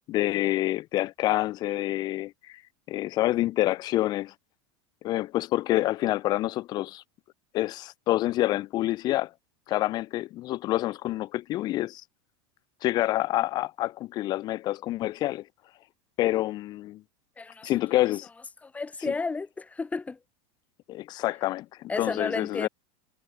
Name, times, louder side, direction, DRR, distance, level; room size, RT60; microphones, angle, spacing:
voice 1, 0.1-2.6 2.9-4.3 5.0-7.0 7.5-9.3 9.7-12.0 12.8-15.5 16.2-17.0 17.6-18.3 20.9-22.7, left 16 dB, 25° left, 0.4 m, -27 dB
voice 2, 17.4-17.7 18.6-20.2 21.9-22.7, left 4 dB, 10° left, 1.4 m, -32 dB
supercardioid pair, 165°, 17 cm